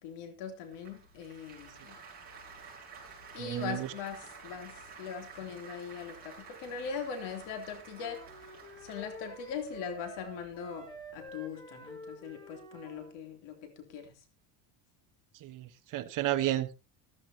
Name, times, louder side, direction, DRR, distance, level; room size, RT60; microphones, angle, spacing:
voice 1, 0.0-2.0 3.3-8.2 8.8-14.1, left 6 dB, 75° left, 5 dB, 3.2 m, -41 dB
Applause, 0.7-11.3, right 4 dB, 20° right, 6.3 m, -52 dB
voice 2, 3.4-3.8 15.4-16.7, right 13 dB, 45° right, 8 dB, 1.2 m, -32 dB
sound 1, 7.9-13.1, equal, 10° left, 2.9 m, -48 dB
15.0 x 14.5 x 2.9 m, 0.28 s
cardioid pair, 165°, 43 cm